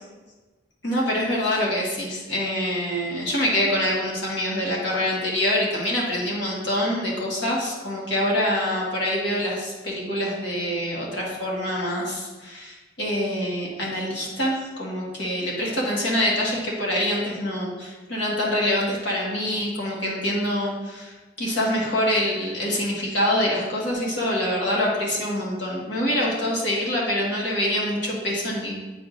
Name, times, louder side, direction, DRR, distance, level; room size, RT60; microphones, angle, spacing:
voice 1, 0.8-28.7, left 1 dB, 70° left, -4 dB, 1.7 m, -25 dB
8.3 x 4.7 x 2.6 m, 1.2 s
head